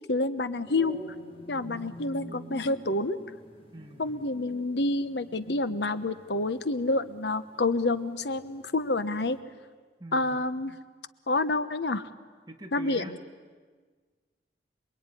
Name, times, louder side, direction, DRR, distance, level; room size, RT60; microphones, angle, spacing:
voice 1, 0.1-1.0 1.5-3.2 4.0-9.4 10.1-10.7 11.3-12.1 12.7-13.2, left 2 dB, 75° left, 12 dB, 1.1 m, -28 dB
sound 1, 0.6-9.4, equal, 35° left, 5.0 m, -48 dB
voice 2, 1.6-2.0 3.7-4.2 10.0-10.4 12.5-13.1, right 1 dB, 25° right, 3 dB, 1.9 m, -44 dB
27.0 x 22.5 x 9.9 m, 1.5 s
head